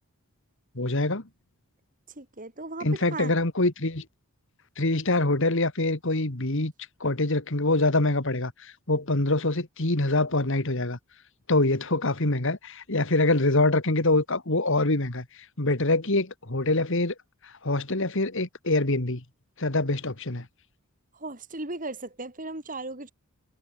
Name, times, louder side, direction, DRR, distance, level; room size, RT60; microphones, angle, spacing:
voice 1, 0.7-1.3 2.8-4.1 4.8-6.7 7.0-11.0 11.5-17.1 17.4-19.2 19.6-20.5, left 2 dB, 60° left, 2.2 m, -25 dB
voice 2, 2.2-3.3 21.1-23.1, right 2 dB, 40° right, 3.8 m, -36 dB
head